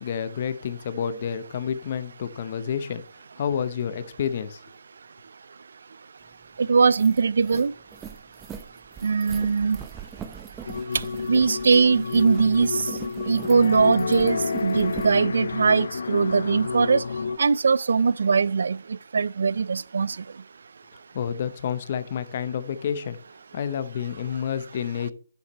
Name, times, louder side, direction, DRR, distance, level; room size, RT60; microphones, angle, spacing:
voice 1, 0.0-3.0 3.4-4.6 21.1-23.2 23.5-25.1, left 8 dB, 40° left, 0.8 m, -29 dB
sound 1, 6.3-6.4 6.7-15.2, right 7 dB, 10° right, 0.6 m, -41 dB
voice 2, 6.6-7.7 9.0-9.8 11.3-12.8 13.3-17.0 17.4-18.8 19.1-20.2, right 5 dB, 70° right, 0.3 m, -21 dB
sound 2, 10.7-17.4, left 5 dB, 70° left, 0.4 m, -30 dB
10.5 x 7.1 x 3.1 m
hypercardioid pair, 165°, 0 cm